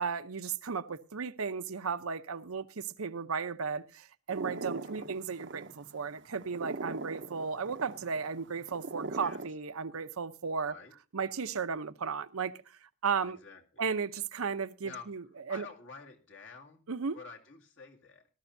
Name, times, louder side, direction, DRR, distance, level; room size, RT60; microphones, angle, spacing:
voice 1, 0.0-10.7 11.1-13.4 13.8-15.7 16.9-17.2, right 5 dB, 90° right, 0.8 m, -35 dB
sound 1, 4.3-9.5, right 3 dB, 55° right, 0.7 m, -41 dB
voice 2, 13.2-13.8 14.8-15.1 15.5-16.9 17.1-18.3, left 5 dB, 65° left, 2.2 m, -49 dB
18.5 x 13.0 x 2.7 m
head